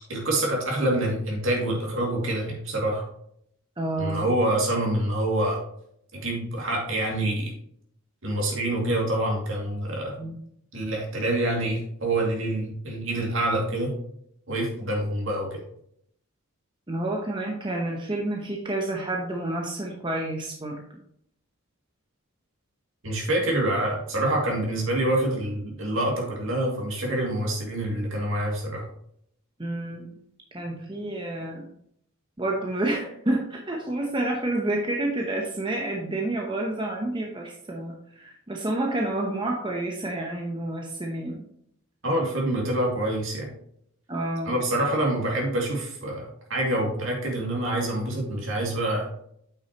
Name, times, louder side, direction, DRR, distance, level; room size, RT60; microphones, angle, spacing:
voice 1, 0.1-3.0 4.0-5.6 6.1-7.5 8.2-10.2 10.7-13.9 14.5-15.6 23.0-28.8 42.0-43.5 44.4-49.1, right 1 dB, 60° right, -1 dB, 2.4 m, -26 dB
voice 2, 3.8-4.2 10.2-10.3 16.9-20.8 29.6-30.1 30.5-31.7 32.4-41.4 44.1-44.5, right 2 dB, 20° right, 0 dB, 0.8 m, -29 dB
8.3 x 6.1 x 3.0 m, 0.69 s
head